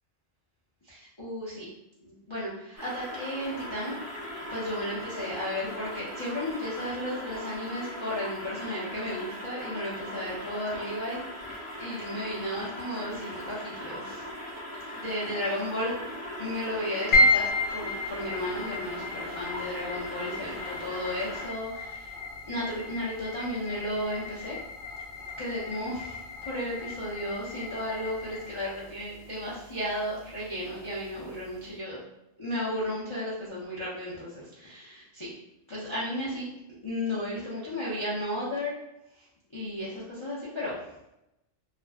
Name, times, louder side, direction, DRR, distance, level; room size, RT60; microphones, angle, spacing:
voice 1, 0.8-1.7 2.0-4.0 4.5-11.2 11.5-14.3 15.0-15.9 16.4-22.2 22.5-24.6 25.4-32.0 32.4-35.3 35.7-36.5 36.8-38.8 39.1-41.0, left 1 dB, 30° left, -9 dB, 0.6 m, -34 dB
sound 1, 2.8-21.5, left 1 dB, 20° right, 0.5 m, -39 dB
sound 2, 17.1-31.6, left 2 dB, 75° left, 1.0 m, -32 dB
2.4 x 2.0 x 3.4 m, 0.88 s
omnidirectional pair, 1.2 m